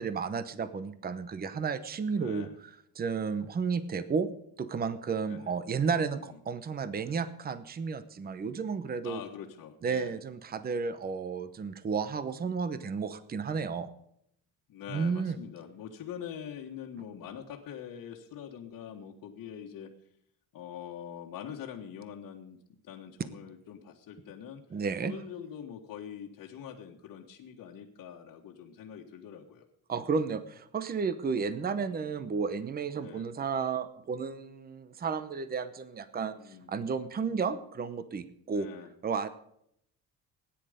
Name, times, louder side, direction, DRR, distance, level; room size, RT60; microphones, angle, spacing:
voice 1, 0.0-2.5 2.9-4.3 4.6-9.2 9.8-13.9 14.9-15.4 24.7-25.1 29.9-36.4 36.7-38.7 39.0-39.3, right 5 dB, 25° right, 13 dB, 0.9 m, -32 dB
voice 2, 2.1-2.6 5.3-5.5 6.2-6.4 9.0-10.2 14.7-19.9 20.5-22.6 22.8-24.6 25.0-29.7 31.6-32.1 33.0-33.3 36.4-36.7 38.5-38.9, left 8 dB, 55° left, -2 dB, 1.7 m, -44 dB
18.0 x 10.5 x 5.1 m, 0.73 s
cardioid pair, 135°, 37 cm